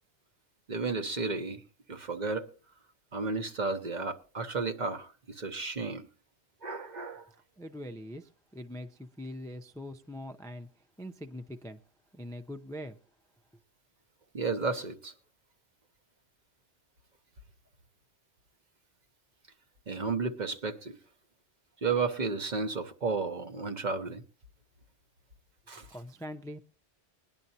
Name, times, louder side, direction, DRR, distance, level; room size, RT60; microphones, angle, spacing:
voice 1, 0.7-1.6 1.9-2.5 3.1-6.1 6.6-7.3 14.3-15.1 19.9-21.0 21.8-24.2 25.7-26.0, right 4 dB, 45° right, 1.0 m, -33 dB
voice 2, 7.6-10.7 11.0-11.8 12.1-13.0 25.9-26.6, equal, 5° left, 0.4 m, -42 dB
21.0 x 10.5 x 2.8 m
omnidirectional pair, 1.1 m